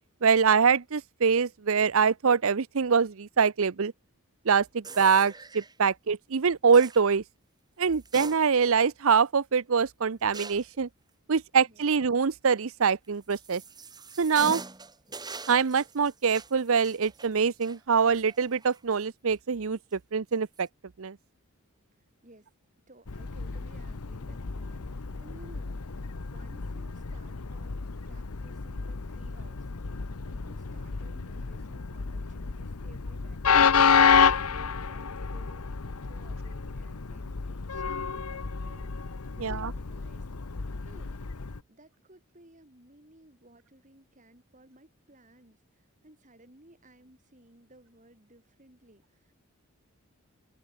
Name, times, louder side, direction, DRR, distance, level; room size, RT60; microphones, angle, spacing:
voice 1, 0.2-3.9 4.5-7.2 7.8-10.9 11.3-13.6 14.2-14.6 15.5-20.7 21.0-21.2 39.4-39.7, right 6 dB, 65° right, 0.6 m, -24 dB
sound 1, 4.8-5.7 6.7-7.0 7.9-8.8 9.2-9.3 10.3-10.8 12.8-18.9 19.3-19.4 20.3-20.6, right 4 dB, 20° right, 4.9 m, -43 dB
voice 2, 22.2-22.5 22.9-35.7 36.0-40.3 40.8-41.2 41.7-49.3, right 1 dB, 35° right, 7.1 m, -57 dB
Train, 23.1-41.6, left 6 dB, 80° left, 0.9 m, -29 dB
open air
head